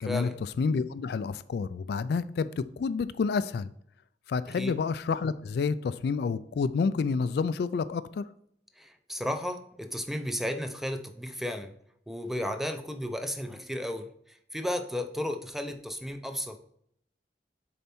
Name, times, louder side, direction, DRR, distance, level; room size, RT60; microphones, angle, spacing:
voice 1, 0.0-0.4 4.6-4.8 8.8-11.7 12.1-14.1 14.5-16.7, left 1 dB, ahead, 7 dB, 0.5 m, -34 dB
voice 2, 0.6-3.7 4.3-8.3, left 5 dB, 65° left, 14 dB, 0.3 m, -29 dB
6.8 x 4.3 x 4.3 m, 0.69 s
head